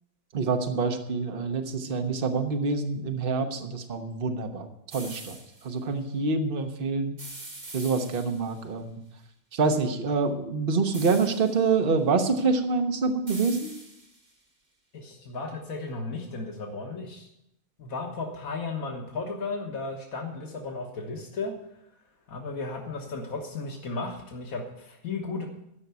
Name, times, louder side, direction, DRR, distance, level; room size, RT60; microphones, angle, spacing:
voice 1, 0.3-5.4 5.6-7.1 7.7-9.0 9.5-13.7, right 4 dB, 45° right, 5 dB, 1.2 m, -26 dB
sound 1, 4.9-5.7 7.2-8.6 10.9-11.7 13.3-14.3, right 2 dB, 90° right, 3.5 m, -43 dB
voice 2, 14.9-17.3 17.8-21.5 22.3-25.5, left 3 dB, 85° left, 2 dB, 1.7 m, -34 dB
13.0 x 5.7 x 9.3 m, 0.82 s
omnidirectional pair, 1.4 m